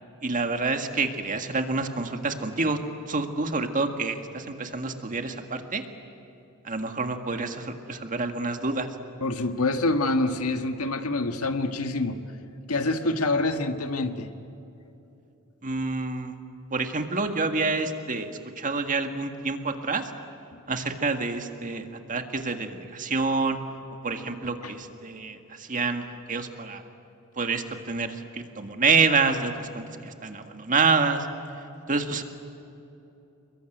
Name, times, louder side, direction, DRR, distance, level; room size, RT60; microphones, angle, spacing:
voice 1, 0.2-2.8 3.1-5.8 6.6-8.9 15.6-16.4 16.7-20.1 20.7-23.6 24.0-26.8 27.4-31.3 31.9-32.2, right 4 dB, 35° right, 6 dB, 1.8 m, -27 dB
voice 2, 9.2-12.2 12.7-14.3, left 2 dB, 80° left, 7 dB, 1.7 m, -26 dB
28.5 x 22.5 x 9.2 m, 2.9 s
head